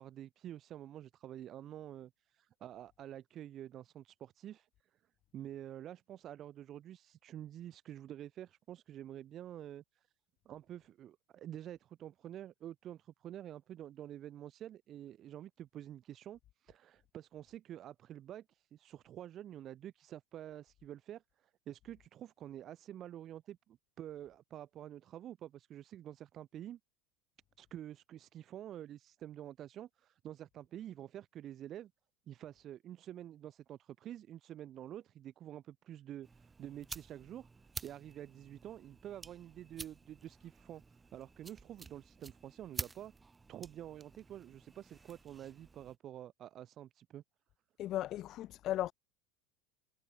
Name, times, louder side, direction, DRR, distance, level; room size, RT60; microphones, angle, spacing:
voice 1, 0.0-4.7 5.3-10.1 10.4-26.8 27.6-31.9 32.3-43.1 43.5-47.2, right 11 dB, 45° right, 3.4 m, -48 dB
sound 1, 36.2-46.0, right 4 dB, 20° right, 1.8 m, -50 dB
voice 2, 47.8-48.9, left 13 dB, 50° left, 1.4 m, -36 dB
hypercardioid pair, 90°, 0 cm